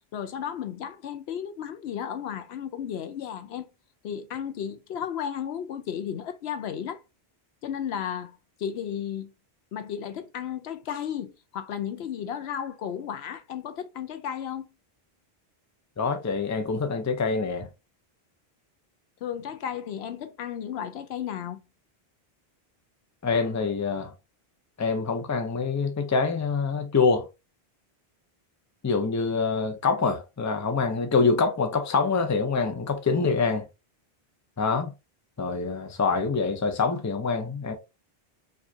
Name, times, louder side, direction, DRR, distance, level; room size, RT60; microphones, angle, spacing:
voice 1, 0.1-3.7 4.0-7.0 7.6-9.3 9.7-14.7 19.2-21.6, left 9 dB, 75° left, 0.8 m, -34 dB
voice 2, 16.0-17.7 23.2-24.1 24.8-27.3 28.8-33.6 34.6-34.9 35.4-37.7, left 4 dB, 20° left, 0.5 m, -25 dB
4.8 x 2.5 x 2.6 m
omnidirectional pair, 1.1 m